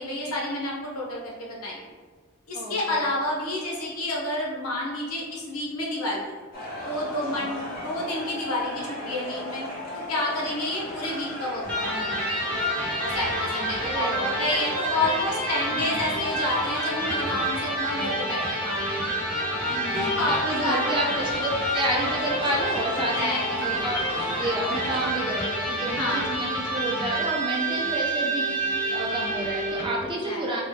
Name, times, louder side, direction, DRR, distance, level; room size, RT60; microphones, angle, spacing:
voice 1, 0.0-1.9 2.5-6.4 6.8-9.7 9.9-12.2 13.0-19.2 19.9-21.2 22.9-23.9 26.0-26.4 30.0-30.4, left 1 dB, 85° left, -3 dB, 0.9 m, -30 dB
voice 2, 2.5-3.1 7.3-7.5 13.8-14.4 15.7-16.0 19.7-24.0 24.4-28.5 28.9-30.6, right 1 dB, 20° right, -2 dB, 0.4 m, -30 dB
sound 1, 6.5-25.1, equal, 45° left, 0.9 m, -37 dB
Electric guitar, 11.6-30.0, right 1 dB, 5° left, 0.9 m, -28 dB
3.0 x 2.9 x 3.1 m, 1.5 s
head